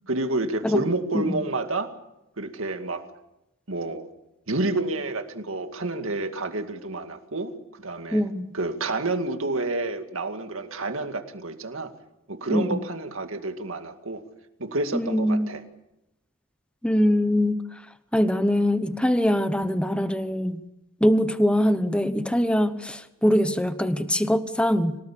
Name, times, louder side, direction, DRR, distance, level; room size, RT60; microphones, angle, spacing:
voice 1, 0.1-1.9 2.4-3.0 3.7-4.0 4.5-8.3 8.5-11.9 12.3-14.2 14.6-15.6, right 2 dB, 65° right, 7 dB, 2.2 m, -29 dB
voice 2, 8.1-8.5 12.5-12.8 14.9-15.5 16.8-17.8 18.1-20.6 21.0-25.0, equal, 5° left, 11 dB, 1.0 m, -23 dB
26.0 x 18.0 x 8.6 m, 0.91 s
head